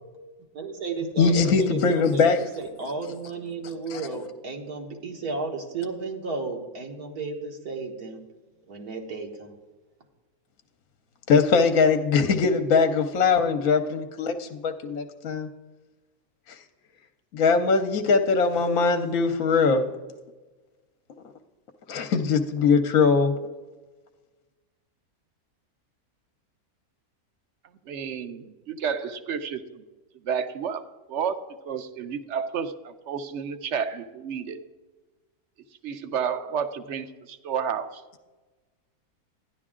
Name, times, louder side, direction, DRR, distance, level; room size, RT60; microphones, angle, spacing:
voice 1, 0.5-2.3 2.6-8.2 8.7-9.5, right 4 dB, 85° right, 2 dB, 2.0 m, -33 dB
voice 2, 1.2-2.4 3.9-4.0 11.3-15.5 16.5-16.6 17.3-19.8 21.9-23.3, left 5 dB, 70° left, 7 dB, 1.1 m, -21 dB
voice 3, 27.9-29.8 30.2-30.8 31.1-34.6 35.8-38.0, right 7 dB, 60° right, 10 dB, 0.9 m, -31 dB
12.5 x 10.5 x 3.7 m, 1.2 s
omnidirectional pair, 1.6 m